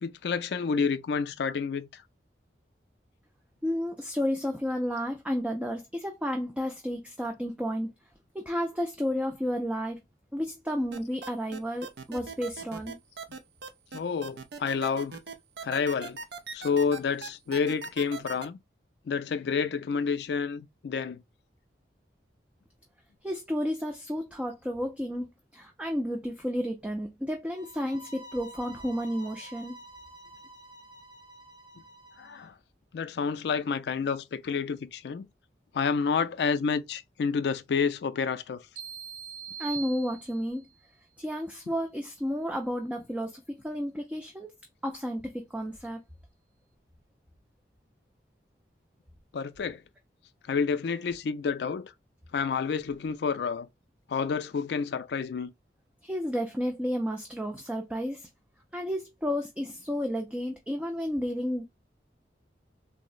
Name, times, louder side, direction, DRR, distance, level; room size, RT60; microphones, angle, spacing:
voice 1, 0.0-2.0 13.9-15.2 15.6-16.2 16.5-18.6 19.1-21.2 32.2-32.5 32.9-35.3 35.7-38.6 41.7-41.8 49.3-49.8 50.5-51.9 52.3-53.7 54.1-55.5, left 5 dB, 70° left, 0.3 m, -29 dB
voice 2, 3.6-7.9 8.3-10.0 10.3-13.0 23.2-29.8 39.6-40.6 41.2-44.5 44.8-46.0 56.0-58.3 58.7-61.6, equal, 5° right, 0.3 m, -32 dB
sound 1, 10.9-18.5, right 4 dB, 70° right, 0.5 m, -39 dB
sound 2, 27.5-32.5, right 1 dB, 20° right, 1.1 m, -49 dB
sound 3, 38.8-40.7, right 8 dB, 90° right, 0.8 m, -41 dB
3.7 x 2.0 x 2.4 m
head